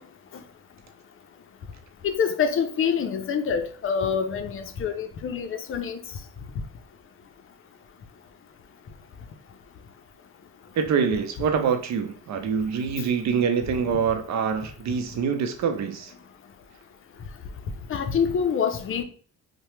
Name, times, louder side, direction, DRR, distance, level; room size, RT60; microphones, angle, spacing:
voice 1, 2.0-6.0 17.9-19.0, left 7 dB, 45° left, 0.5 m, -26 dB
voice 2, 10.8-16.1, right 6 dB, 65° right, 0.6 m, -25 dB
2.8 x 2.1 x 3.1 m
cardioid pair, 90°, 30 cm